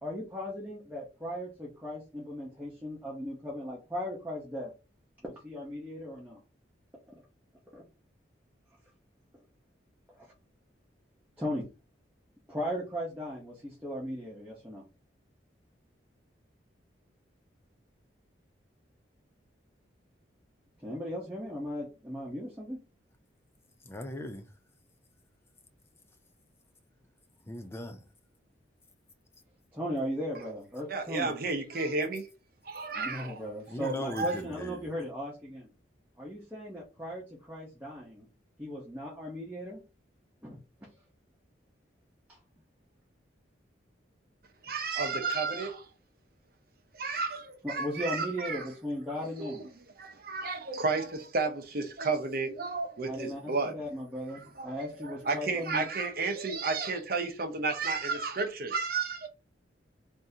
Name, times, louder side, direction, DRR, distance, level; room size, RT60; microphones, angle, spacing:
voice 1, 0.0-4.7 5.2-6.4 7.7-7.8 10.2-10.3 11.4-11.7 12.5-14.8 20.8-22.8 29.7-31.3 33.0-35.7 36.2-38.3 38.6-39.8 40.4-40.6 47.6-49.6 53.0-55.9, equal, 10° right, 0.8 m, -37 dB
voice 2, 23.9-24.4 27.5-28.0 33.7-34.9, left 1 dB, 15° left, 0.4 m, -38 dB
voice 3, 30.9-32.3 32.6-33.4 33.8-34.4 44.6-45.9 46.9-48.7 49.4-49.6 50.0-53.8 54.3-59.3, right 4 dB, 50° right, 0.7 m, -32 dB
3.6 x 2.7 x 2.7 m
head